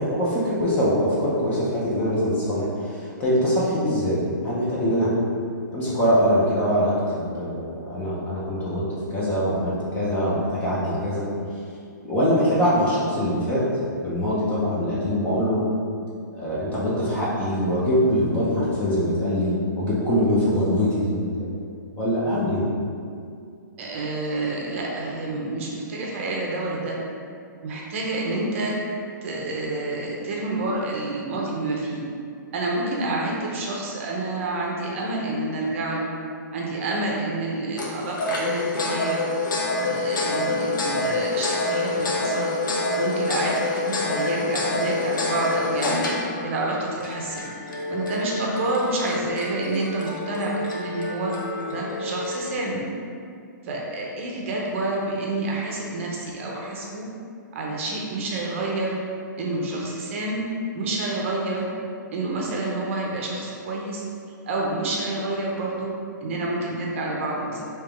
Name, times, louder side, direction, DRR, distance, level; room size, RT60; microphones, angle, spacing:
voice 1, 0.0-5.1 5.7-11.3 12.0-13.6 14.0-15.6 16.4-21.5 22.0-22.6, equal, 15° left, -8 dB, 0.6 m, -23 dB
voice 2, 23.8-27.0 27.6-28.7 29.2-32.0 32.5-36.1 36.5-39.2 39.8-42.5 43.0-46.1 46.4-47.4 47.9-51.3 51.7-52.8 53.6-57.1 57.5-59.0 59.4-60.4 60.7-61.7 62.1-64.0 64.5-65.9 66.2-67.7, right 2 dB, 40° right, -2 dB, 0.6 m, -28 dB
sound 1, 37.8-52.6, left 2 dB, 75° left, 0.8 m, -27 dB
3.4 x 2.9 x 3.4 m, 2.3 s
hypercardioid pair, 165°, 11 cm